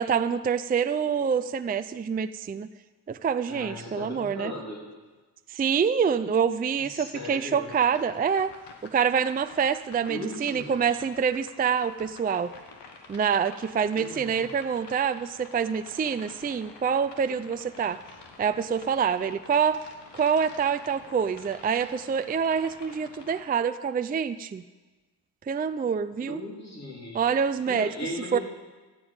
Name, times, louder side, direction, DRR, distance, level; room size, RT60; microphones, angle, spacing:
voice 1, 0.0-2.7 3.1-4.5 5.5-8.5 8.8-12.5 13.1-18.0 18.4-19.8 20.1-24.6 25.5-26.4 27.1-27.9 28.3-28.4, right 7 dB, 25° right, 12 dB, 0.4 m, -26 dB
voice 2, 3.5-4.8 6.8-7.7 10.1-11.0 13.9-14.4 26.2-27.2 27.7-28.4, left 1 dB, 40° left, -3 dB, 3.2 m, -37 dB
sound 1, 7.7-23.4, left 4 dB, 85° left, 1.6 m, -49 dB
15.0 x 5.4 x 8.7 m, 1.2 s
cardioid pair, 75°, 41 cm